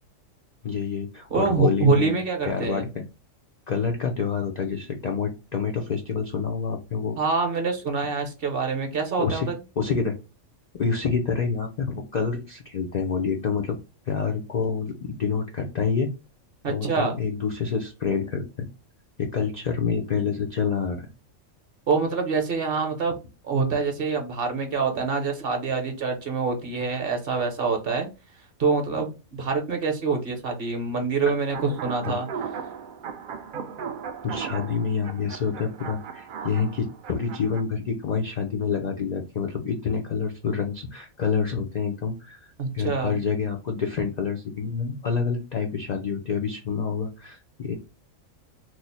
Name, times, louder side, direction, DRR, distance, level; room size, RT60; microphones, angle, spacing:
voice 1, 0.6-3.0 3.7-7.2 9.2-9.5 9.8-10.1 10.7-13.8 14.1-16.1 16.7-18.7 19.2-21.1 32.1-32.2 34.2-47.7, left 5 dB, 80° left, 2 dB, 0.3 m, -27 dB
voice 2, 1.3-2.9 7.2-9.6 16.6-17.2 21.9-23.2 23.4-28.1 28.6-32.3 42.6-43.2, right 4 dB, 50° right, 3 dB, 0.8 m, -25 dB
sound 1, 31.5-37.6, right 7 dB, 75° right, 0.4 m, -37 dB
3.1 x 2.0 x 4.0 m, 0.31 s
omnidirectional pair, 1.4 m